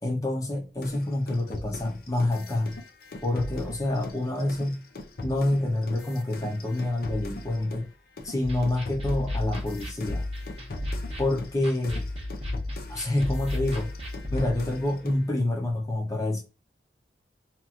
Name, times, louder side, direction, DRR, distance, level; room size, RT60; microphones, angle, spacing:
voice 1, 0.0-2.8 3.2-4.8 5.2-7.9 8.2-10.2 11.2-12.0 12.9-13.9 14.3-16.4, left 1 dB, 20° left, 0.7 m, -27 dB
sound 1, 0.8-7.9 8.2-15.3, left 1 dB, 55° left, 0.5 m, -41 dB
sound 2, 8.4-14.4, left 2 dB, 35° right, 0.8 m, -33 dB
2.9 x 2.6 x 2.4 m
head